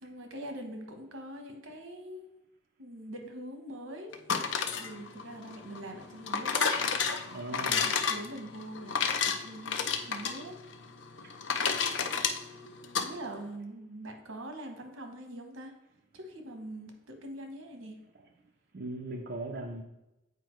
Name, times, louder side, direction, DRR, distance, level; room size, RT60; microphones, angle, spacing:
voice 1, 0.0-2.3 2.8-4.1 4.7-6.7 7.5-10.6 13.0-15.7 16.1-18.0, right 1 dB, 90° right, 4 dB, 1.0 m, -43 dB
sound 1, 4.1-13.1, left 6 dB, 65° left, 0.5 m, -31 dB
voice 2, 7.3-7.9 11.2-11.3 18.7-19.8, right 2 dB, 55° right, 1 dB, 0.6 m, -39 dB
8.3 x 4.5 x 3.1 m, 0.92 s
head